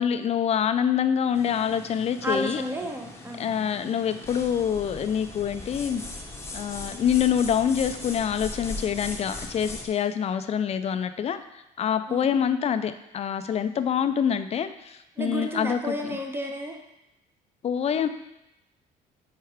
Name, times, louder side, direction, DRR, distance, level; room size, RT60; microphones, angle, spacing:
voice 1, 0.0-2.6 3.4-6.0 6.5-15.9 17.6-18.1, left 8 dB, 40° left, 10 dB, 0.4 m, -26 dB
sound 1, 1.3-9.9, left 2 dB, 15° left, 0.9 m, -39 dB
voice 2, 2.2-3.5 12.1-12.3 15.2-16.8, equal, 15° right, 3 dB, 0.9 m, -31 dB
4.6 x 4.5 x 4.9 m, 0.90 s
cardioid pair, 110°, 17 cm